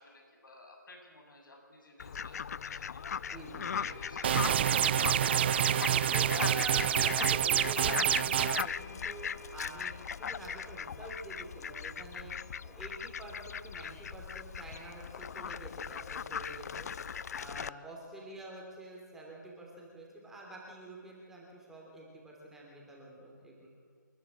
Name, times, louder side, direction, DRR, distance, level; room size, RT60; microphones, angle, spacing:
voice 1, 0.0-3.4 3.7-6.5 12.1-12.4 17.0-17.4, left 1 dB, 80° left, 1 dB, 7.8 m, -56 dB
Fowl, 2.0-17.7, left 7 dB, 50° left, 0.4 m, -39 dB
voice 2, 3.3-4.0 6.1-12.3 12.6-16.9 17.3-23.7, right 1 dB, 5° right, -3 dB, 3.1 m, -47 dB
sound 1, 3.7-15.3, left 3 dB, 35° left, 2.8 m, -52 dB
sound 2, 4.2-8.6, right 10 dB, 30° right, 0.5 m, -27 dB
28.0 x 11.5 x 8.7 m, 2.1 s
hypercardioid pair, 155°, 11 cm